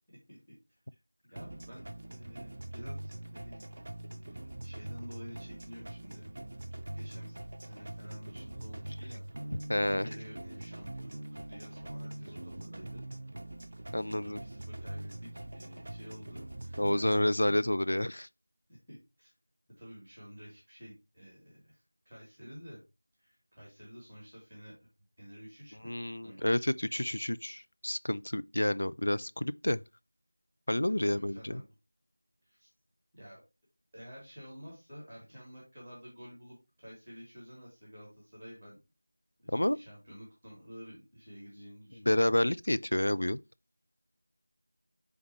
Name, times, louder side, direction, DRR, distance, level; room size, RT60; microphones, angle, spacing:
voice 1, 1.2-3.7 4.1-6.2 6.8-11.2 11.5-13.0 14.0-17.1 17.4-17.7 18.7-19.3 19.8-22.8 23.2-24.7 25.2-25.9 26.2-26.7 31.0-31.6 32.4-32.7 33.1-33.4 33.9-38.8 39.4-42.2, equal, ahead, 2.6 m, -51 dB
sound 1, 1.4-17.3, right 1 dB, 45° right, 0.6 m, -43 dB
voice 2, 9.7-10.1 13.9-14.4 16.8-18.3 25.8-29.8 30.7-31.6 39.5-39.8 42.1-43.4, left 1 dB, 65° left, 0.4 m, -29 dB
9.6 x 3.6 x 3.1 m
figure-of-eight pair, 175°, 0 cm